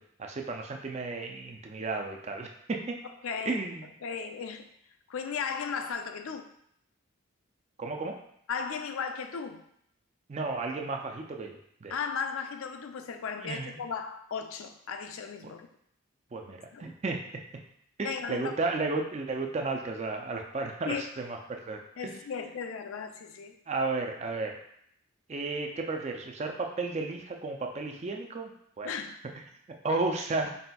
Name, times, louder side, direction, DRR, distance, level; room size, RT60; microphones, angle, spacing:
voice 1, 0.2-3.0 3.5-3.9 7.8-8.2 10.3-11.5 11.8-11.9 13.4-13.8 15.4-15.5 16.3-17.2 18.0-22.2 23.7-24.6 25.3-28.5 28.8-28.9 29.8-30.5, right 3 dB, 30° right, 2 dB, 0.4 m, -33 dB
voice 2, 3.2-3.6 4.0-4.7 5.1-6.5 8.5-9.6 11.9-15.7 16.7-16.9 18.0-18.5 20.8-21.0 22.0-23.5 28.8-29.2, left 6 dB, 70° left, 7 dB, 0.4 m, -36 dB
4.2 x 4.1 x 2.3 m, 0.72 s
head